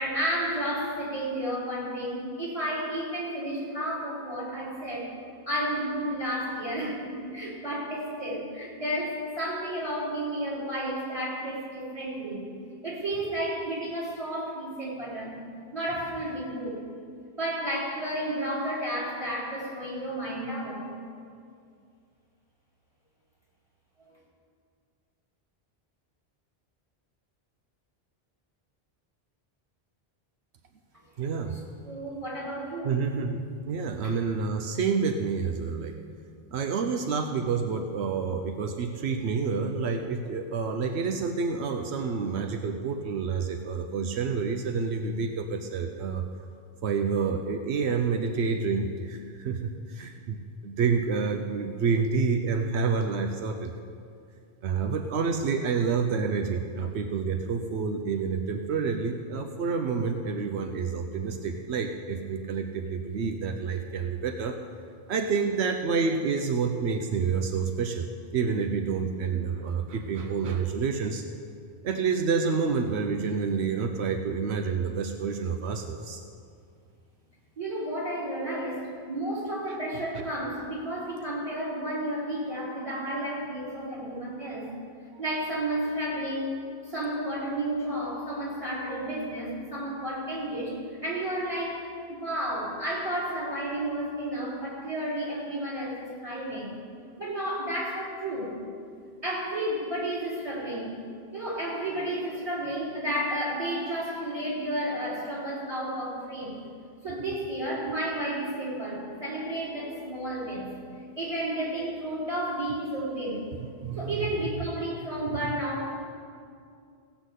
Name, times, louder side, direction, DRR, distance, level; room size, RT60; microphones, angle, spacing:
voice 1, 0.0-5.1 5.5-12.5 12.8-15.4 15.7-16.8 17.3-20.9 31.9-33.0 34.0-34.1 77.6-84.7 85.1-96.8 97.2-98.6 99.2-101.0 101.3-106.6 107.0-110.8 111.2-113.5 113.9-115.9, right 1 dB, 30° right, -6 dB, 3.9 m, -32 dB
voice 2, 31.2-31.6 32.8-33.4 33.7-35.9 36.5-46.2 46.8-53.7 54.6-64.6 65.1-68.1 68.3-71.2 71.8-76.2 79.7-79.8 80.1-80.3 113.8-114.2, right 5 dB, 85° right, 4 dB, 1.0 m, -28 dB
16.5 x 5.8 x 8.2 m, 2.3 s
omnidirectional pair, 1.1 m